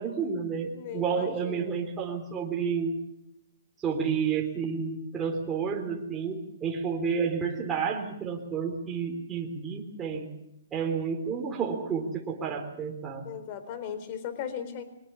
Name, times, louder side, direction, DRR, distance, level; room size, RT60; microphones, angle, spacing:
voice 1, 0.0-3.0 3.8-10.3 10.7-13.3, right 6 dB, 15° right, -1 dB, 3.7 m, -30 dB
voice 2, 0.7-1.8 13.2-14.8, left 8 dB, 40° left, 11 dB, 4.0 m, -37 dB
23.0 x 20.0 x 7.0 m, 0.83 s
hypercardioid pair, 145°, 0 cm